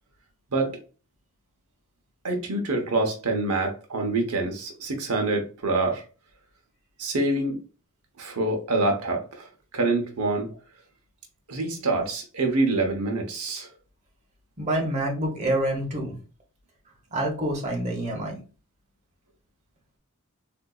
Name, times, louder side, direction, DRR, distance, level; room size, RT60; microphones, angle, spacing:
voice 1, 2.2-6.0 7.0-7.6 8.2-9.5 9.7-10.5 11.5-13.7, right 2 dB, 80° right, 3 dB, 0.8 m, -26 dB
voice 2, 14.6-16.1 17.1-18.4, right 1 dB, 30° right, 0 dB, 0.9 m, -27 dB
3.8 x 2.6 x 2.3 m, 0.34 s
head